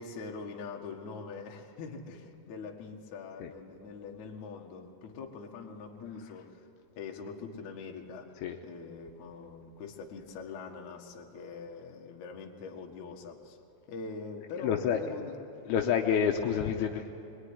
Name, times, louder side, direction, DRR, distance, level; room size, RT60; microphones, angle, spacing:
voice 1, 0.0-6.7 7.0-8.3 8.6-13.6 13.9-15.3 15.8-16.0, left 4 dB, 55° left, 1 dB, 2.6 m, -43 dB
voice 2, 14.5-15.1 15.7-17.1, left 8 dB, 75° left, 3 dB, 2.8 m, -28 dB
25.0 x 22.0 x 9.8 m, 3.0 s
omnidirectional pair, 4.9 m